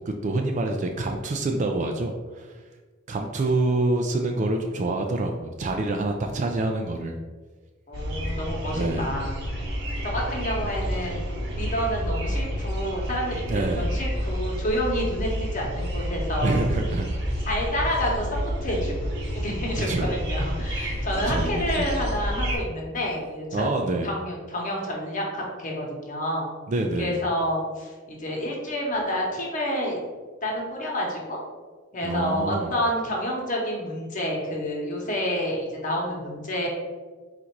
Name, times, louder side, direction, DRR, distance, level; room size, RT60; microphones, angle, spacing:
voice 1, 0.1-2.6 3.1-7.2 8.7-9.1 13.5-13.9 16.4-17.4 19.9-20.1 21.3-21.9 23.5-24.1 26.7-27.2 32.0-32.7, right 2 dB, 40° right, 3 dB, 0.3 m, -26 dB
voice 2, 7.9-9.4 10.0-11.3 11.5-16.8 17.4-23.7 24.0-26.5 27.0-30.0 30.4-31.4 31.9-36.7, equal, 40° left, -1 dB, 1.0 m, -29 dB
sound 1, 7.9-22.6, equal, 60° right, 0.9 m, -29 dB
4.0 x 2.5 x 4.5 m, 1.4 s
head